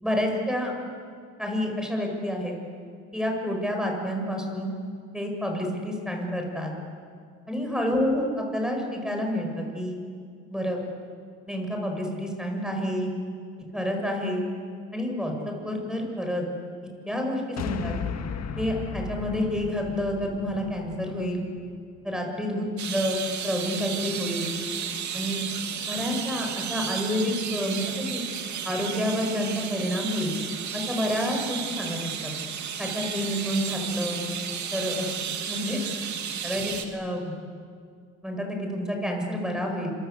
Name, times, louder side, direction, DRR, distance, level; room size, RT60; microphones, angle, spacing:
voice 1, 0.0-0.7 1.4-2.5 3.1-4.7 5.1-6.7 7.5-10.0 10.5-10.8 11.5-13.1 13.7-14.5 14.9-16.4 17.1-18.0 18.6-21.4 22.0-24.5 25.1-25.4 25.9-28.2 28.6-30.3 30.7-32.3 32.8-34.2 34.7-35.1 35.5-35.8 36.4-37.3 38.2-39.9, equal, ahead, 2 dB, 7.2 m, -29 dB
sound 1, 17.6-22.0, left 7 dB, 60° left, 1.8 m, -35 dB
sound 2, 22.8-36.9, right 7 dB, 70° right, 2.6 m, -33 dB
26.5 x 24.5 x 8.4 m, 2.2 s
cardioid pair, 90°, 30 cm